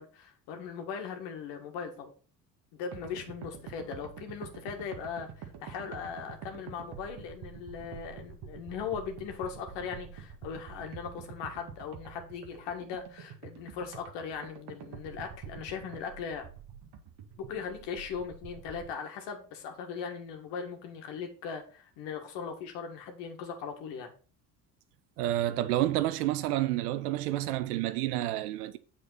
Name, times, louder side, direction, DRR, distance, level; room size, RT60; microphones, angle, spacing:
voice 1, 0.0-2.1 2.7-16.5 17.4-24.1, left 6 dB, 65° left, 2.0 m, -39 dB
sound 1, 2.9-18.9, right 8 dB, 55° right, 1.5 m, -47 dB
voice 2, 25.2-28.8, right 14 dB, 80° right, 0.8 m, -29 dB
8.4 x 4.3 x 5.8 m
hypercardioid pair, 55°, 46 cm